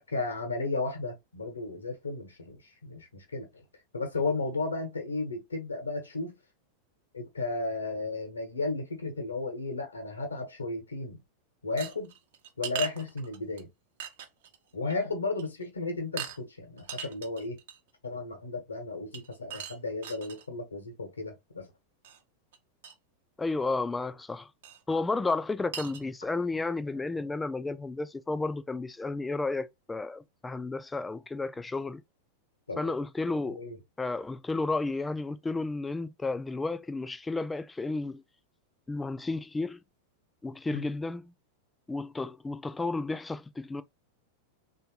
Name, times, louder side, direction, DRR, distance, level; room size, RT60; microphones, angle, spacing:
voice 1, 0.0-3.5 3.9-6.4 7.1-11.2 11.6-12.1 12.6-13.7 14.7-17.6 18.0-21.7 32.7-32.9 33.6-33.8 40.7-40.9, left 3 dB, 75° left, 1.1 m, -34 dB
sound 1, 11.8-13.6 14.0-14.6 14.9-15.0 15.4-15.6 16.2-16.4 16.8-17.9 19.1-20.5 22.0-22.2 22.5-22.6 22.8-22.9 24.6-24.8 25.3-25.4 25.7-26.1, right 9 dB, 55° right, 0.7 m, -40 dB
voice 2, 23.4-24.5 24.9-32.0 32.8-33.6 34.0-38.2 38.9-39.8 40.4-41.3 41.9-43.8, left 3 dB, 10° left, 0.4 m, -32 dB
3.4 x 2.7 x 3.0 m
figure-of-eight pair, 90°, 0 cm